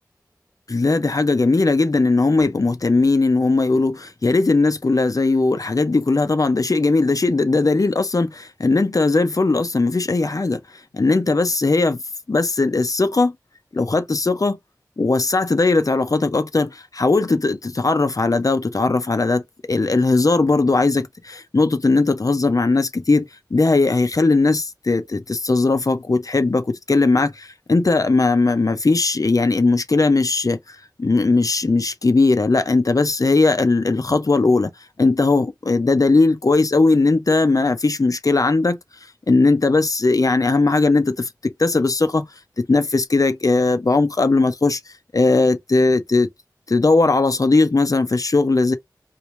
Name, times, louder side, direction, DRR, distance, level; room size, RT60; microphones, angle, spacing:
voice 1, 0.7-10.6 10.9-12.0 12.3-13.3 13.7-14.6 15.0-19.4 19.7-30.6 31.0-34.7 35.0-38.8 39.3-42.3 42.6-44.8 45.1-46.3 46.7-48.7, left 3 dB, 55° left, 0.6 m, -18 dB
3.1 x 2.6 x 3.1 m
wide cardioid pair, 60°, 7 cm